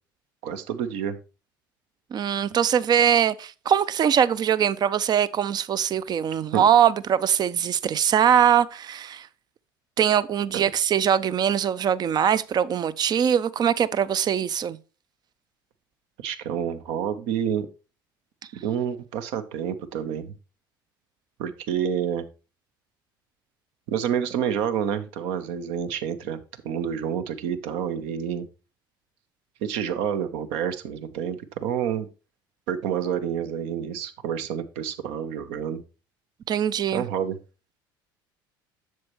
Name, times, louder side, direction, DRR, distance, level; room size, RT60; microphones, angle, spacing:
voice 1, 0.4-1.2 6.5-6.6 10.5-10.6 16.2-17.7 18.5-20.4 21.4-22.3 23.9-26.4 26.6-28.5 29.6-32.1 32.7-35.8 36.9-37.4, right 8 dB, 65° right, 0.9 m, -28 dB
voice 2, 2.1-9.3 10.0-14.8 36.5-37.0, right 9 dB, 35° right, 0.6 m, -22 dB
7.7 x 6.9 x 3.0 m
hypercardioid pair, 65°, 12 cm